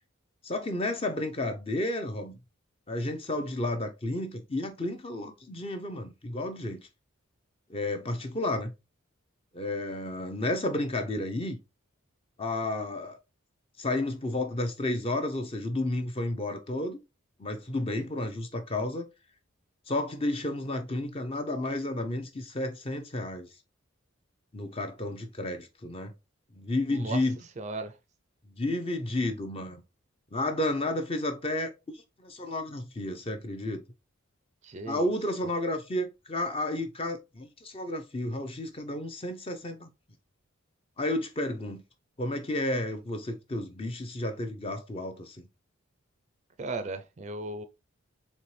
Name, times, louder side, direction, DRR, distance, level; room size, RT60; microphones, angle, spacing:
voice 1, 0.4-2.4 2.9-6.9 7.7-8.7 9.5-11.6 12.4-13.2 13.8-17.0 17.4-19.1 19.9-23.5 24.5-26.1 26.5-27.4 28.6-29.8 30.3-31.7 32.2-33.8 34.9-39.9 41.0-41.8 42.2-45.4, left 1 dB, 25° left, 0.6 m, -32 dB
voice 2, 27.6-27.9 34.6-35.1 46.6-47.6, right 3 dB, 35° right, 0.4 m, -36 dB
4.2 x 3.3 x 3.2 m
head